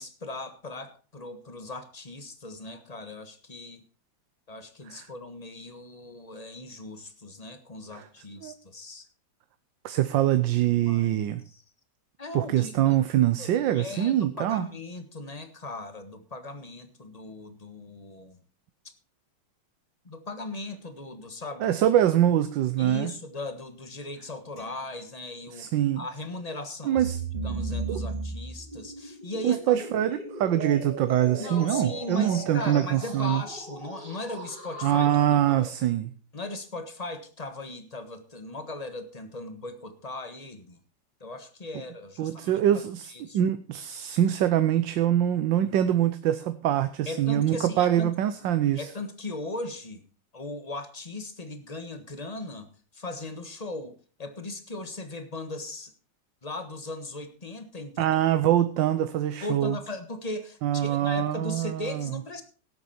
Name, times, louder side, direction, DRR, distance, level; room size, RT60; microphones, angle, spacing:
voice 1, 0.0-3.8 4.5-9.1 10.9-11.2 11.4-11.6 12.2-13.0 13.4-18.4 20.0-21.8 22.8-25.7 25.9-27.1 27.4-29.8 31.4-35.1 35.5-35.7 36.3-40.8 41.2-42.6 43.1-43.4 47.1-48.1 48.7-50.0 50.3-55.9 56.4-58.1 59.4-62.4, left 2 dB, 25° left, 9 dB, 1.4 m, -38 dB
voice 2, 9.8-11.4 12.3-14.7 21.6-23.1 25.6-26.0 26.9-27.2 27.9-28.0 29.4-33.4 34.8-36.1 42.2-48.9 58.0-59.8 60.6-62.1, right 11 dB, 85° right, 11 dB, 1.5 m, -24 dB
sound 1, 24.6-26.1, left 1 dB, 75° left, 4.7 m, -55 dB
sound 2, 27.0-35.5, right 3 dB, 25° right, 3.0 m, -36 dB
17.0 x 8.6 x 4.3 m, 0.36 s
omnidirectional pair, 2.0 m